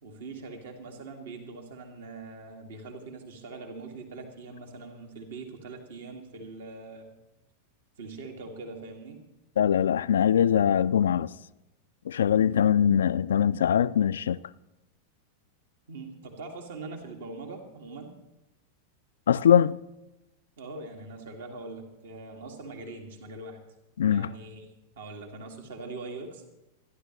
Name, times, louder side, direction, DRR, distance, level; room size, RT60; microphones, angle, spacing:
voice 1, 0.0-7.1 8.0-9.2 15.9-18.1 20.6-23.6 24.1-26.4, right 3 dB, 60° right, 1.9 m, -42 dB
voice 2, 9.6-11.3 12.1-14.4 19.3-19.8 24.0-24.3, left 9 dB, 65° left, 0.4 m, -22 dB
27.0 x 11.5 x 3.1 m
figure-of-eight pair, 90°, 0 cm